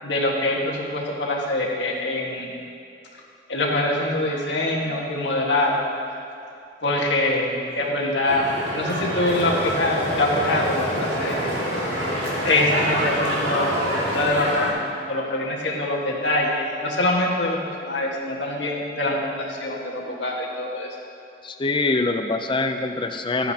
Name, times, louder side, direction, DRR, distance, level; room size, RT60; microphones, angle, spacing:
voice 1, 0.0-2.5 3.5-5.9 6.8-11.5 11.7-12.1 12.4-20.9, left 1 dB, 90° left, -2 dB, 1.6 m, -24 dB
sound 1, 8.3-14.7, right 1 dB, 80° right, 2.0 m, -28 dB
Stream, 9.2-14.3, left 1 dB, 65° left, 1.9 m, -31 dB
voice 2, 21.4-23.5, left 3 dB, 30° left, 7 dB, 0.5 m, -24 dB
14.0 x 9.1 x 2.8 m, 2.6 s
head